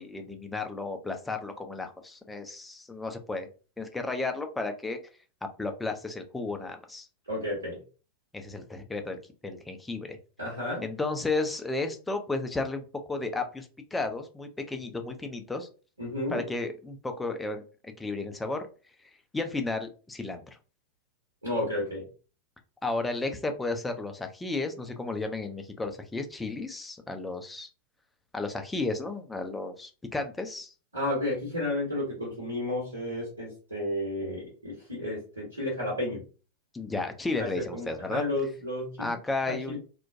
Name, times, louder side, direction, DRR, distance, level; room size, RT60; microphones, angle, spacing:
voice 1, 0.0-3.5 3.8-5.0 5.4-7.1 8.3-10.2 10.8-15.7 16.3-18.7 19.3-20.4 22.8-27.7 28.3-30.7 36.7-38.2 39.0-39.8, left 3 dB, 10° left, 6 dB, 0.4 m, -33 dB
voice 2, 7.3-7.8 10.4-10.8 16.0-16.4 21.4-22.0 30.9-36.2 37.4-39.1 39.4-39.8, left 1 dB, 80° right, -4 dB, 1.1 m, -32 dB
2.3 x 2.1 x 2.6 m, 0.36 s
figure-of-eight pair, 90°, 0 cm